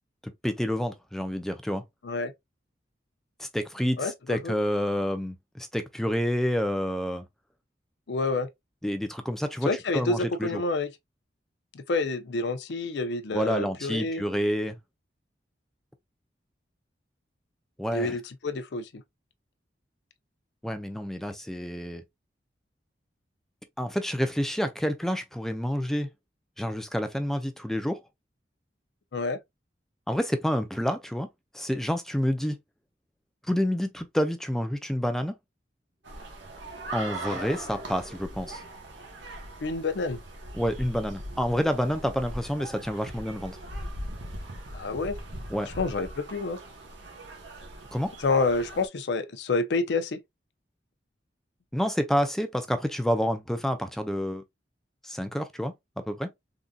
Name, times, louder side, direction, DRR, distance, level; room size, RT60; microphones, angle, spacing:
voice 1, 0.2-1.8 3.4-7.2 8.8-10.6 13.3-14.8 17.8-18.2 20.6-22.0 23.8-26.1 26.6-28.0 30.1-31.3 31.5-32.6 33.5-35.3 36.9-38.6 40.5-43.6 45.5-45.7 47.9-48.1 51.7-54.4 55.0-55.7 56.1-56.3, equal, ahead, 0.4 m, -28 dB
voice 2, 4.0-4.5 8.1-8.5 9.6-10.9 11.7-14.2 17.9-19.0 29.1-29.4 39.6-40.2 44.7-45.2 45.8-46.6 48.2-50.2, left 3 dB, 70° left, 0.5 m, -28 dB
sound 1, 36.0-48.9, right 1 dB, 85° right, 1.0 m, -40 dB
sound 2, 36.3-39.3, right 2 dB, 40° right, 0.9 m, -43 dB
3.7 x 2.6 x 2.2 m
head